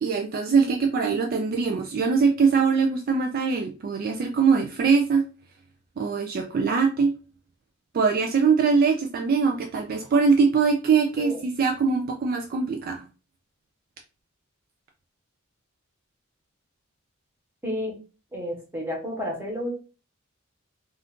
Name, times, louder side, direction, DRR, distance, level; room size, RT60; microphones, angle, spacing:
voice 1, 0.0-5.2 6.0-7.1 7.9-13.0, right 5 dB, 45° right, 3 dB, 0.3 m, -22 dB
voice 2, 17.6-18.0 18.3-19.7, equal, 10° right, -2 dB, 1.0 m, -31 dB
2.5 x 2.4 x 3.5 m, 0.34 s
head